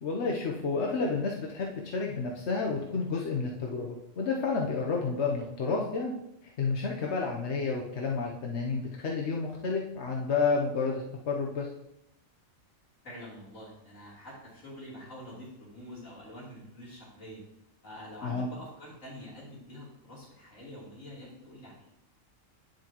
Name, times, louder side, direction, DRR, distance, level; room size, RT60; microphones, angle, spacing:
voice 1, 0.0-6.1 6.4-11.7 18.2-18.5, left 4 dB, 60° left, -1 dB, 1.1 m, -30 dB
voice 2, 13.0-17.4 17.8-21.9, equal, 80° left, -7 dB, 3.8 m, -46 dB
9.7 x 7.5 x 3.0 m, 0.82 s
omnidirectional pair, 1.3 m